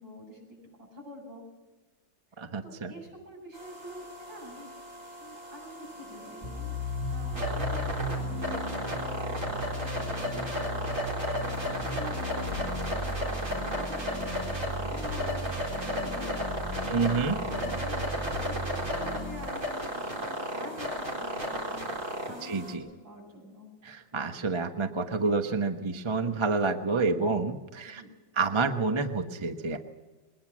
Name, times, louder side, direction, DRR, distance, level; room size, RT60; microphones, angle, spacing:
voice 1, 0.0-1.4 2.6-4.7 5.2-23.7 27.8-28.1, equal, 65° right, -1 dB, 8.4 m, -47 dB
voice 2, 2.4-2.9 16.9-17.4 22.4-22.8 23.8-28.0 28.4-29.8, right 4 dB, 20° right, 7 dB, 0.8 m, -28 dB
sound 1, 3.5-22.7, equal, 40° right, 4.4 m, -34 dB
sound 2, 6.4-19.5, left 1 dB, ahead, 5.1 m, -36 dB
22.0 x 19.5 x 6.2 m, 1.2 s
omnidirectional pair, 2.2 m